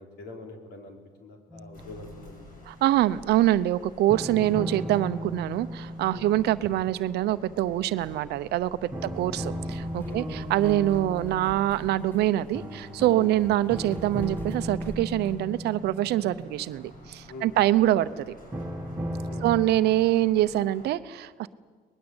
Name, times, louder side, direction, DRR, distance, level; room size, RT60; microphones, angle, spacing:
voice 1, 0.0-2.6 4.3-4.5 6.1-6.3 9.0-9.2 10.1-10.4 13.2-13.3 17.3-17.6 19.3-19.7, left 3 dB, 70° left, 3 dB, 4.2 m, -44 dB
sound 1, 1.5-2.7 4.1-8.1 8.9-17.7 18.5-19.7, equal, 15° right, 1.7 m, -37 dB
sound 2, 1.7-20.9, left 1 dB, 55° left, 6.9 m, -50 dB
voice 2, 2.7-18.4 19.4-21.5, right 14 dB, 75° right, 14 dB, 0.8 m, -25 dB
sound 3, 9.6-15.4, equal, 10° left, 2.5 m, -45 dB
23.5 x 20.0 x 8.0 m, 1.5 s
cardioid pair, 110°, 17 cm